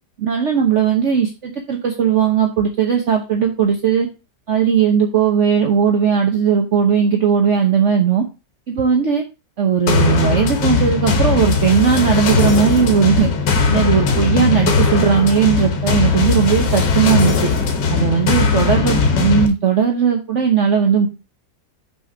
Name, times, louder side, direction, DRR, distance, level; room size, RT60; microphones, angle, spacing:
voice 1, 0.2-4.1 4.5-8.3 8.7-9.2 9.6-13.3 13.7-17.5 17.9-21.1, right 7 dB, 50° right, 3 dB, 1.1 m, -17 dB
sound 1, 9.9-19.5, left 5 dB, 85° left, 1.6 m, -18 dB
6.1 x 4.4 x 4.9 m, 0.29 s
omnidirectional pair, 1.8 m